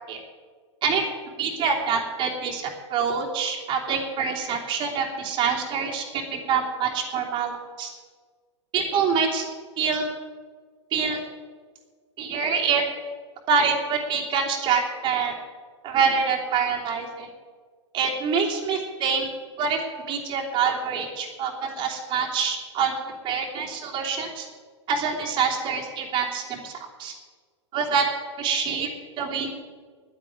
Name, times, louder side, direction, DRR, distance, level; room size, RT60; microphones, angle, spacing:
voice 1, 1.4-7.5 7.8-7.9 8.7-9.4 9.8-10.0 10.9-11.2 12.2-12.8 13.5-15.3 15.8-17.3 17.9-19.3 19.6-19.8 20.1-22.9 23.2-24.5 24.9-26.7 27.0-27.1 27.7-28.0 28.4-28.9 29.2-29.5, right 6 dB, 30° right, -2 dB, 3.0 m, -25 dB
11.0 x 10.0 x 9.5 m, 1.5 s
figure-of-eight pair, 100°, 16 cm